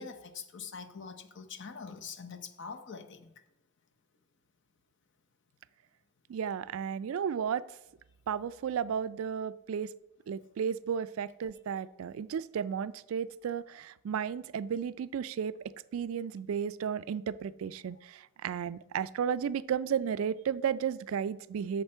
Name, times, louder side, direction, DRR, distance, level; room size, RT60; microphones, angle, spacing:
voice 1, 0.0-3.3, left 5 dB, 55° left, 8 dB, 0.7 m, -44 dB
voice 2, 6.3-7.6 8.3-9.9 10.3-15.6 15.9-21.8, right 7 dB, 65° right, 16 dB, 0.3 m, -33 dB
8.0 x 6.6 x 4.4 m, 0.90 s
head